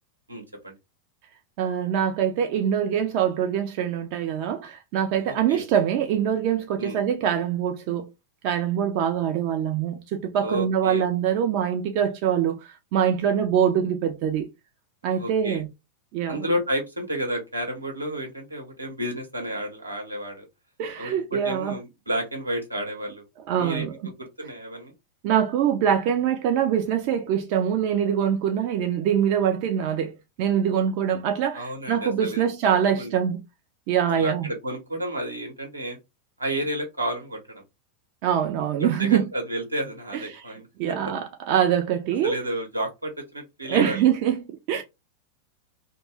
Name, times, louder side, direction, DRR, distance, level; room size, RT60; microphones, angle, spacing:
voice 1, 0.3-0.7 5.2-5.6 6.8-7.0 10.4-11.0 15.1-15.6 16.3-20.5 21.0-23.2 23.6-24.9 31.5-33.1 34.2-36.0 36.4-37.6 38.8-40.7 42.2-44.0, right 1 dB, 85° right, 0.9 m, -31 dB
voice 2, 1.6-8.1 8.4-14.5 15.0-15.7 16.1-16.4 20.8-21.8 23.5-23.9 25.2-33.4 33.9-34.5 38.2-39.2 40.1-40.4 40.8-42.4 43.7-44.8, right 9 dB, 45° right, 0.4 m, -24 dB
2.7 x 2.1 x 3.3 m
figure-of-eight pair, 90°, 0 cm